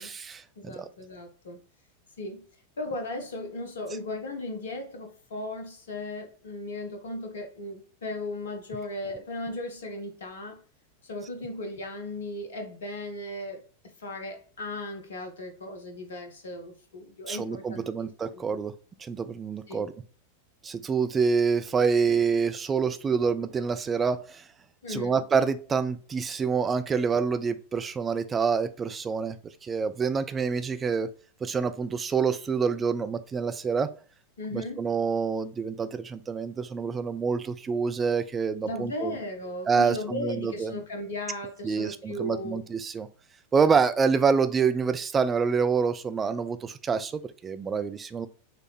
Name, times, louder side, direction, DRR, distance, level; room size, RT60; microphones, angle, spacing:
voice 1, 0.0-0.9 17.3-18.7 19.0-19.9 20.6-24.4 24.9-29.4 29.6-31.1 31.4-33.9 34.5-39.2 39.7-40.8 41.6-43.1 43.5-48.3, right 5 dB, 20° right, 0.4 m, -27 dB
voice 2, 0.6-1.6 2.2-2.4 2.8-10.6 11.0-18.6 19.7-19.9 24.8-25.2 34.4-34.9 38.6-42.6, left 1 dB, 65° left, 0.8 m, -36 dB
4.1 x 3.2 x 3.2 m
figure-of-eight pair, 90°, 0 cm